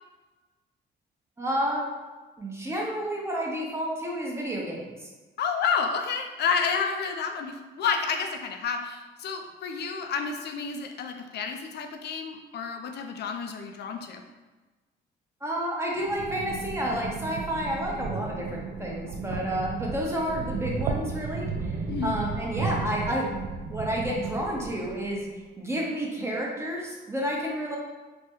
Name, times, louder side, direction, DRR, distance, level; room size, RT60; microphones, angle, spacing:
voice 1, 1.4-1.9 2.4-5.0 15.4-25.3 25.6-27.8, equal, 15° right, -2 dB, 0.7 m, -30 dB
voice 2, 5.4-14.2 21.9-22.2, left 6 dB, 55° left, 5 dB, 0.4 m, -30 dB
sound 1, 16.0-25.2, right 4 dB, 75° right, 0.4 m, -34 dB
3.3 x 2.1 x 2.9 m, 1.2 s
cardioid pair, 90°, 20 cm